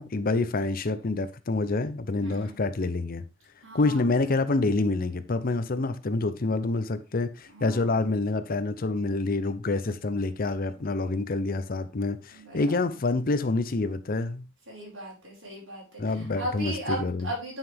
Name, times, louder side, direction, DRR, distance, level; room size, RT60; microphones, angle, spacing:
voice 1, 0.0-3.2 3.7-14.4 16.0-17.3, left 3 dB, 45° left, 0.6 m, -27 dB
voice 2, 2.2-2.5 3.6-4.0 7.5-7.9 10.7-11.0 12.3-12.8 14.7-17.6, right 1 dB, 75° right, 5.3 m, -37 dB
9.6 x 5.7 x 3.5 m
head